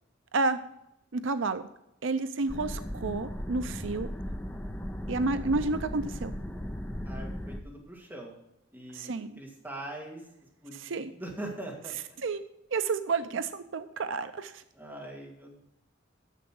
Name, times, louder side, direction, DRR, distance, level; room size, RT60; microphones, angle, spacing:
voice 1, 1.1-1.6 2.0-4.1 5.1-6.3 8.9-9.3 10.7-11.1 12.2-12.4 12.7-14.6, right 3 dB, 80° right, 11 dB, 0.6 m, -30 dB
sound 1, 2.5-7.6, equal, 10° left, 0.7 m, -37 dB
voice 2, 7.1-8.3 8.7-10.2 10.6-12.2 14.7-15.6, right 1 dB, 10° right, -2 dB, 2.5 m, -42 dB
9.9 x 7.0 x 6.1 m, 0.83 s
head